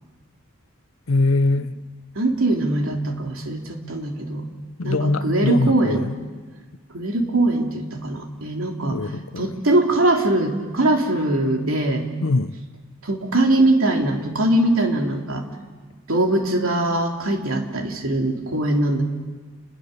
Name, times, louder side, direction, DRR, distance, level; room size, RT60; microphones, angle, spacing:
voice 1, 1.1-1.7 4.8-6.1 8.9-9.6 12.2-12.6, left 2 dB, 75° left, 0.8 m, -22 dB
voice 2, 2.2-4.4 4.8-6.1 6.9-9.0 9.4-12.0 13.0-15.4 16.1-19.0, right 1 dB, 70° right, 3.4 m, -21 dB
30.0 x 21.5 x 6.8 m
head